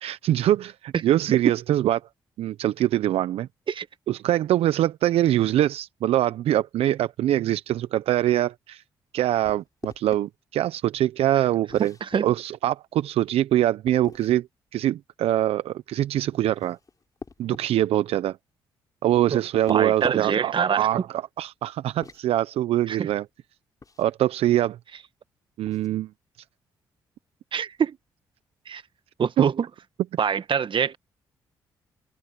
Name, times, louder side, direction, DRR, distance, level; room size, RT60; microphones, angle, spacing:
voice 1, 0.0-2.0 2.4-3.5 4.1-8.8 9.1-11.9 12.2-14.5 14.7-16.8 17.4-18.4 19.0-23.3 24.0-24.8 25.6-26.1 29.4-29.5, right 13 dB, 70° right, 0.9 m, -23 dB
sound 1, 9.4-10.2 11.7-12.2 13.9-14.4 16.3-17.7 19.4-20.5 21.8-22.2 23.8-24.1 25.6-25.9, left 4 dB, 35° left, 3.8 m, -43 dB
voice 2, 19.7-20.9 22.9-23.1 27.5-28.0 28.7-28.8 29.2-29.7 30.2-31.0, right 7 dB, 55° right, 1.6 m, -24 dB
hypercardioid pair, 45°, 10 cm